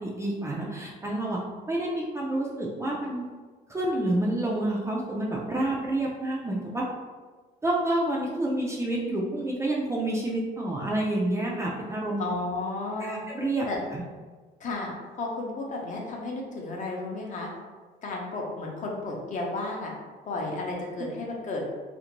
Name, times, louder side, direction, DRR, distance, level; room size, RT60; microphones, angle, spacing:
voice 1, 0.0-3.2 3.7-6.9 7.6-12.2 13.0-13.7 13.9-14.1, right 1 dB, 15° right, -3 dB, 0.3 m, -28 dB
voice 2, 12.2-13.2 13.7-13.8 14.6-17.5 18.0-19.9 20.2-21.6, left 2 dB, 45° left, -1 dB, 0.6 m, -33 dB
2.5 x 2.1 x 2.9 m, 1.4 s
cardioid pair, 130°, 18 cm